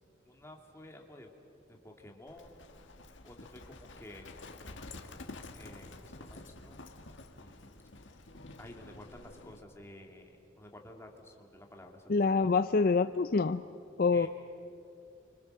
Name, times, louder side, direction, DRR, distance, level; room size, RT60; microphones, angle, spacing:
voice 1, 0.2-1.3 1.7-2.6 3.2-5.0 5.5-6.8 7.3-7.7 8.0-8.2 8.6-12.5 14.1-14.3, left 1 dB, 15° left, 2 dB, 2.5 m, -52 dB
Livestock farm animals working animals, 2.3-9.6, left 2 dB, 85° left, 1.8 m, -49 dB
voice 2, 12.1-13.6 14.0-14.3, left 4 dB, 50° left, 11 dB, 0.5 m, -26 dB
29.0 x 25.5 x 6.6 m, 2.8 s
head